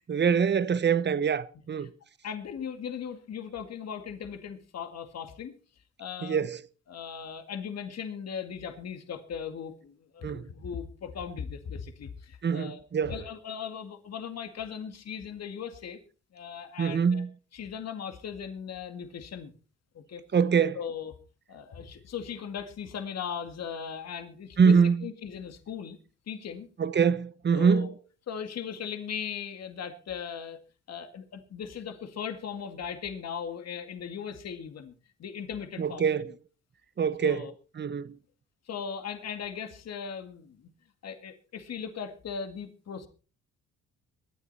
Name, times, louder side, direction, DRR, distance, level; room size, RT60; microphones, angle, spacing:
voice 1, 0.1-1.9 6.2-6.6 10.2-10.5 12.4-13.1 16.8-17.3 20.3-20.8 24.6-25.0 26.8-27.9 35.8-36.3 37.0-38.2, right 6 dB, 35° right, 1.0 m, -24 dB
voice 2, 2.2-5.6 6.0-6.5 6.9-12.8 13.1-16.0 16.3-17.2 17.5-19.5 19.9-20.2 20.7-21.2 21.5-26.0 26.3-26.7 27.5-27.9 28.3-30.6 30.9-34.9 35.2-36.3 37.2-37.5 38.7-40.7 41.0-43.1, left 7 dB, 60° left, 2.1 m, -38 dB
22.5 x 9.5 x 4.2 m
cardioid pair, 90°, 30 cm